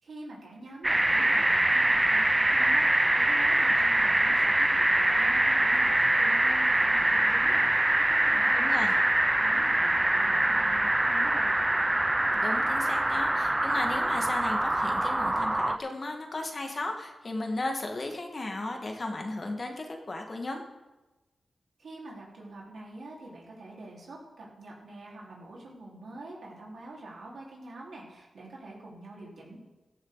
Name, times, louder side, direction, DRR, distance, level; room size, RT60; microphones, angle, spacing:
voice 1, 0.0-9.0 9.4-11.5 21.8-29.6, right 2 dB, 75° right, -4 dB, 4.5 m, -45 dB
sound 1, 0.8-15.8, right 1 dB, 15° right, 0.6 m, -24 dB
voice 2, 8.5-8.9 12.3-20.6, left 2 dB, 40° left, 3 dB, 1.9 m, -35 dB
14.5 x 14.0 x 4.1 m, 1.1 s
wide cardioid pair, 100°, 0 cm